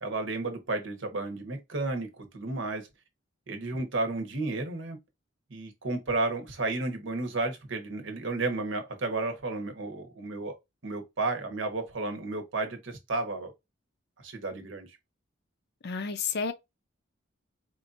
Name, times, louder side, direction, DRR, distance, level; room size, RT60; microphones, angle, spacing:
voice 1, 0.0-2.9 3.5-5.0 5.5-10.6 10.8-13.5 14.2-14.9, right 2 dB, 70° right, 1.0 m, -32 dB
voice 2, 15.8-16.5, left 5 dB, 60° left, 0.6 m, -30 dB
4.6 x 2.7 x 2.5 m
head